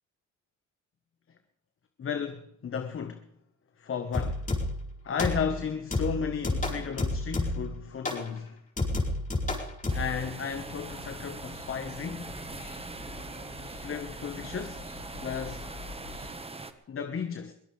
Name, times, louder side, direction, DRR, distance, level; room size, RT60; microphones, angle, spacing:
voice 1, 2.0-3.2 3.8-4.5 5.0-8.6 9.9-12.3 13.8-14.9 15.2-15.7 16.9-17.5, left 6 dB, 45° left, 1.4 m, -34 dB
sound 1, 4.1-4.9 5.2-5.6 5.9-7.7 8.1-8.3 8.8-10.2, left 2 dB, 25° left, 4.6 m, -30 dB
sound 2, 9.9-16.7, right 3 dB, 20° right, 1.5 m, -42 dB
sound 3, 10.0-16.3, left 3 dB, 75° left, 5.0 m, -46 dB
22.5 x 17.5 x 3.5 m
cardioid pair, 90°, 30 cm